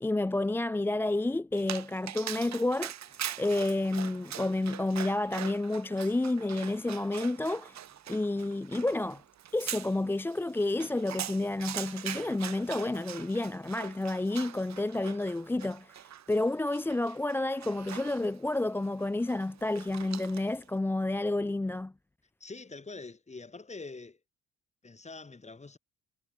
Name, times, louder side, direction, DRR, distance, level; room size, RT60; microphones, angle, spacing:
voice 1, 0.0-2.9 3.4-7.8 8.1-9.2 9.5-21.9, left 2 dB, 5° left, 0.4 m, -30 dB
Dog, 1.6-20.6, right 11 dB, 65° right, 2.0 m, -43 dB
voice 2, 22.4-24.2 24.8-25.8, left 3 dB, 25° left, 3.4 m, -44 dB
cardioid pair, 90°, 30 cm